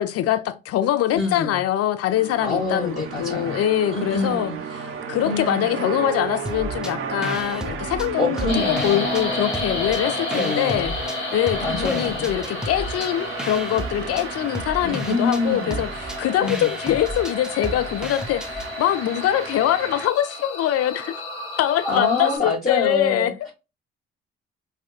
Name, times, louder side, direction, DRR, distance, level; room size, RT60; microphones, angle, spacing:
voice 1, 0.0-4.5 5.1-10.9 11.3-21.1 21.6-23.3, left 12 dB, 50° left, 0.5 m, -23 dB
voice 2, 1.1-1.6 2.4-3.6 3.9-4.6 5.2-5.8 8.2-9.0 10.3-10.9 11.6-12.3 14.8-15.8 16.4-16.7 21.8-23.5, left 3 dB, 25° left, 1.1 m, -26 dB
sound 1, 2.1-20.1, right 6 dB, 45° right, 0.7 m, -34 dB
sound 2, 6.5-6.9 7.2-9.3 9.5-11.2 11.5-18.7, equal, ahead, 0.5 m, -34 dB
sound 3, 8.5-22.4, left 3 dB, 80° left, 0.9 m, -32 dB
3.5 x 2.3 x 2.4 m
figure-of-eight pair, 45°, 31 cm